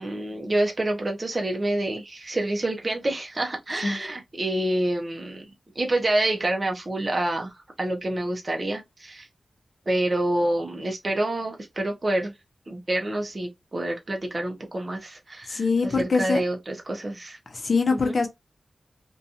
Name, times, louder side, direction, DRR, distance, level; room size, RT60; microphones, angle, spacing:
voice 1, 0.0-5.4 5.8-9.3 9.9-12.3 12.7-17.4 17.9-18.1, right 1 dB, 35° right, 0.5 m, -27 dB
voice 2, 3.8-4.1 15.5-16.4 17.5-18.3, left 4 dB, 50° left, 0.6 m, -24 dB
2.5 x 2.2 x 2.7 m
wide cardioid pair, 95°, 0 cm